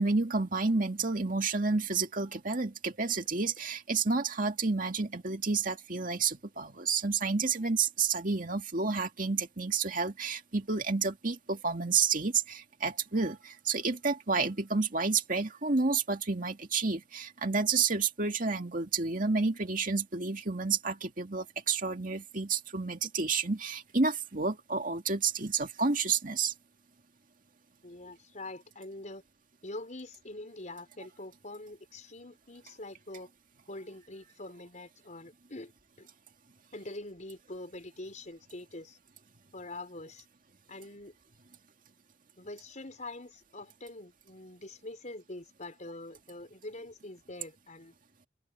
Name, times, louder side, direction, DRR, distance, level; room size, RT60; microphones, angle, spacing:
voice 1, 0.0-26.5, right 4 dB, 45° right, 2.2 m, -30 dB
voice 2, 27.8-29.2 29.6-33.3 33.7-35.7 36.0-36.1 36.7-39.0 39.5-40.2 40.7-41.1 42.4-47.9, left 2 dB, 40° left, 4.9 m, -44 dB
head